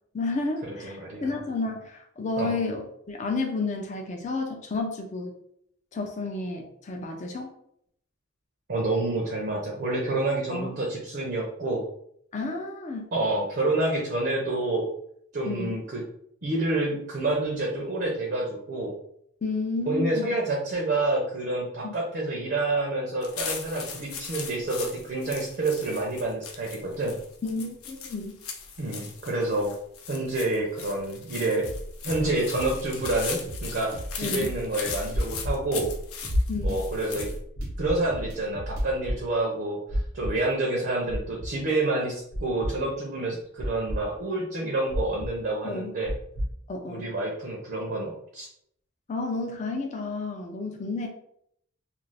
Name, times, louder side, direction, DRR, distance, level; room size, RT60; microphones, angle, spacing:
voice 1, 0.1-5.3 5.9-7.5 10.5-10.8 12.3-13.1 15.5-15.8 19.4-20.4 21.8-21.9 27.4-28.4 34.2-34.5 36.5-36.8 45.6-45.9 46.7-47.1 49.1-51.1, left 3 dB, 35° left, 2 dB, 0.4 m, -31 dB
voice 2, 0.7-1.3 2.4-2.6 8.7-11.8 13.1-14.9 15.3-16.0 16.4-18.9 19.9-27.1 28.8-29.7 30.1-31.7 32.0-35.9 36.6-37.3 37.8-46.1 46.9-48.5, right 2 dB, 50° right, -1 dB, 0.6 m, -28 dB
sound 1, 23.2-37.4, left 6 dB, 85° left, 0.5 m, -39 dB
sound 2, 31.6-38.9, right 1 dB, 80° right, 0.8 m, -37 dB
sound 3, 35.1-35.5 36.3-36.7 37.5-37.9 38.7-39.1 39.9-40.3 41.1-41.5 42.3-42.7 43.6-44.0 44.9-45.3 46.1-46.5, equal, 60° left, 0.9 m, -27 dB
2.5 x 2.4 x 3.3 m, 0.70 s
head